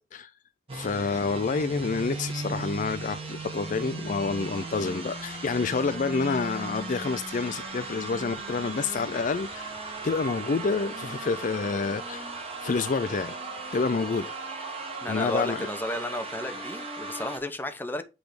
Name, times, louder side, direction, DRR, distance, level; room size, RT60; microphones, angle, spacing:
voice 1, 0.7-9.8 10.0-12.3 12.6-13.4 13.7-14.3 15.1-15.7, left 4 dB, 45° left, 0.4 m, -28 dB
sound 1, 0.7-17.4, right 3 dB, 35° right, 1.7 m, -37 dB
voice 2, 4.7-5.0 15.0-18.0, left 1 dB, 10° left, 0.8 m, -33 dB
8.0 x 3.5 x 5.0 m
head